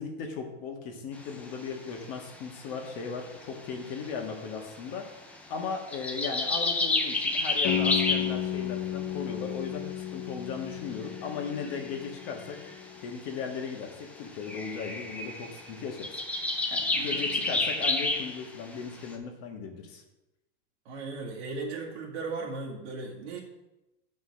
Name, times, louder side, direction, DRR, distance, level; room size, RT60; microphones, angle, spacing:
voice 1, 0.0-5.0 5.5-12.6 13.0-16.1 16.7-20.0, left 5 dB, 45° left, 3 dB, 1.6 m, -37 dB
sound 1, 1.3-1.9 2.3-2.4 2.7-4.3 4.6-5.4 5.7-9.0 11.0-12.8 13.7-13.8 13.9-14.0 14.3-19.1, left 2 dB, 5° left, 0.3 m, -30 dB
sound 2, 7.6-13.4, left 10 dB, 60° left, 1.0 m, -34 dB
voice 2, 16.9-17.6 20.9-23.4, right 3 dB, 75° right, -4 dB, 1.9 m, -37 dB
8.0 x 5.2 x 6.4 m, 0.98 s
supercardioid pair, 160°, 34 cm